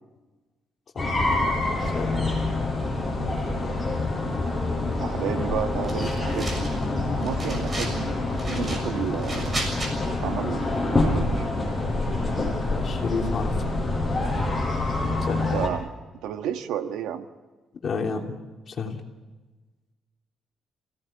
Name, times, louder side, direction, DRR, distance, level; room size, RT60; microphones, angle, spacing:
sound 1, 1.0-15.7, left 2 dB, 10° left, 5.7 m, -26 dB
voice 1, 1.8-2.4 12.6-13.5 15.2-15.5 17.8-18.4 18.7-19.0, left 4 dB, 35° left, 1 dB, 3.3 m, -31 dB
voice 2, 4.9-6.7 7.2-8.2 8.5-9.7 10.2-11.5 15.5-15.9 16.2-17.3, right 9 dB, 90° right, 7 dB, 1.6 m, -31 dB
sound 2, 5.8-6.9 7.2-8.0 8.3-9.9, right 1 dB, 25° right, 6.8 m, -34 dB
27.5 x 17.5 x 8.6 m, 1.2 s
cardioid pair, 150°, 0 cm